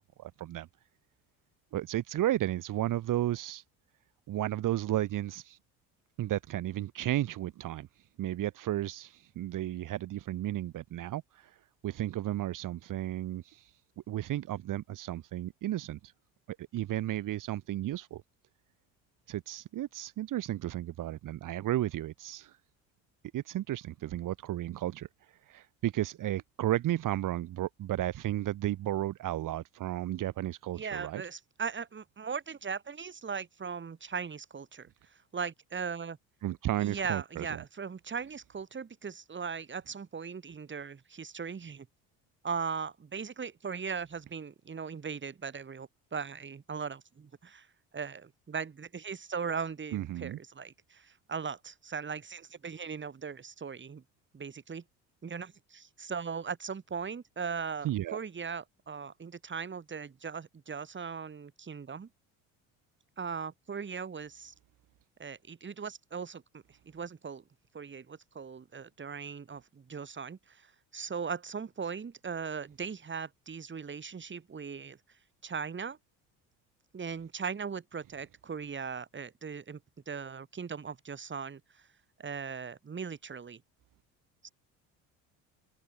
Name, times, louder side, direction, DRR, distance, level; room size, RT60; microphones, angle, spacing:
voice 1, 0.2-0.7 1.7-3.6 4.3-5.6 6.2-7.9 8.2-11.6 11.8-13.7 14.1-16.1 16.5-18.2 19.3-22.6 23.3-25.1 25.5-31.2 36.4-37.6 49.9-50.4 57.8-58.2, right 13 dB, 60° right, 3.4 m, -33 dB
voice 2, 30.8-34.9 35.3-36.2 36.8-41.9 42.4-47.7 47.9-54.0 54.3-54.8 55.2-62.1 63.2-64.5 65.2-67.4 67.7-75.0 75.4-76.0 76.9-79.8 80.1-81.8 82.2-83.6 84.4-84.5, right 6 dB, 30° right, 6.3 m, -39 dB
supercardioid pair, 85°, 36 cm